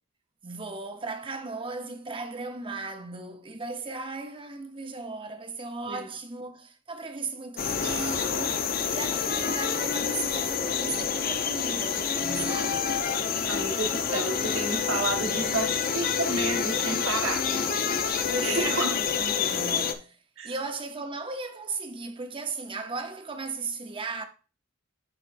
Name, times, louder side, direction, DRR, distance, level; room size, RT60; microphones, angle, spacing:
voice 1, 0.4-8.6 8.9-12.9 18.3-20.2 20.4-24.2, right 3 dB, 25° right, 0.7 m, -36 dB
sound 1, 7.6-19.9, left 6 dB, 45° left, 0.6 m, -28 dB
voice 2, 13.5-17.5 18.4-19.0 20.4-20.5, right 2 dB, 65° right, 1.4 m, -30 dB
11.0 x 4.5 x 2.5 m
head